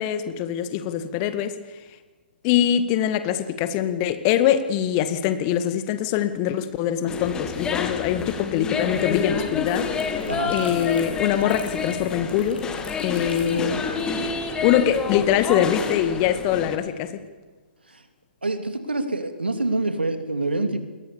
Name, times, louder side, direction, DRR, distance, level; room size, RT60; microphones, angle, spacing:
voice 1, 0.0-1.6 2.4-9.9 10.5-12.7 13.0-13.8 14.6-17.2, left 10 dB, 30° left, 11 dB, 1.9 m, -23 dB
sound 1, 7.1-16.8, left 5 dB, 15° left, 2.5 m, -29 dB
sound 2, 8.9-14.9, left 3 dB, 70° left, 7.0 m, -45 dB
voice 2, 13.5-13.8 17.9-18.0 18.4-20.8, right 2 dB, 75° right, 8 dB, 2.9 m, -26 dB
29.5 x 21.5 x 7.1 m, 1.4 s
figure-of-eight pair, 120°, 6 cm